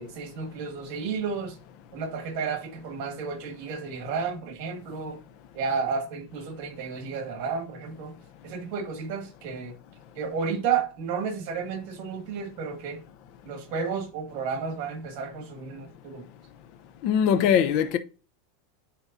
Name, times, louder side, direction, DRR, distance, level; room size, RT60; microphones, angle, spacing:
voice 1, 0.0-1.6 1.9-5.2 5.5-8.1 8.4-9.7 10.1-13.0 13.4-16.2, right 5 dB, 55° right, 1.9 m, -32 dB
voice 2, 17.0-18.0, left 8 dB, 50° left, 0.7 m, -21 dB
10.0 x 4.2 x 2.6 m
supercardioid pair, 140°, 0 cm